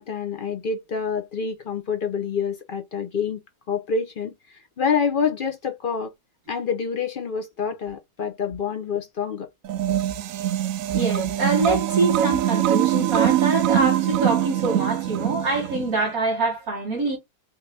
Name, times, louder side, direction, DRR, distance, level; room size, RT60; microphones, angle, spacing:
voice 1, 0.0-3.4 3.7-4.3 4.8-6.1 6.5-9.5, left 6 dB, 65° left, 0.5 m, -27 dB
sound 1, 9.6-16.0, right 12 dB, 75° right, 0.8 m, -23 dB
voice 2, 10.9-17.2, right 3 dB, 55° right, 2.0 m, -25 dB
5.4 x 2.7 x 3.3 m
omnidirectional pair, 1.9 m